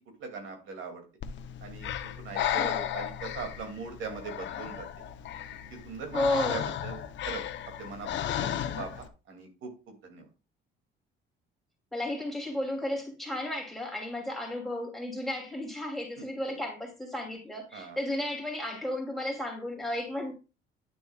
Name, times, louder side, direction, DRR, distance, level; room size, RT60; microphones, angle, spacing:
voice 1, 0.2-1.0 1.6-1.9 2.2-4.9 5.7-7.4 7.8-10.3 16.2-16.3 17.7-18.0, right 4 dB, 75° right, 2.6 m, -41 dB
Breathing, 1.2-9.1, left 10 dB, 65° left, 0.8 m, -34 dB
voice 2, 2.6-2.9 6.1-6.7 11.9-20.3, left 1 dB, ahead, 2.9 m, -33 dB
10.5 x 6.9 x 2.4 m
cardioid pair, 125°, 20 cm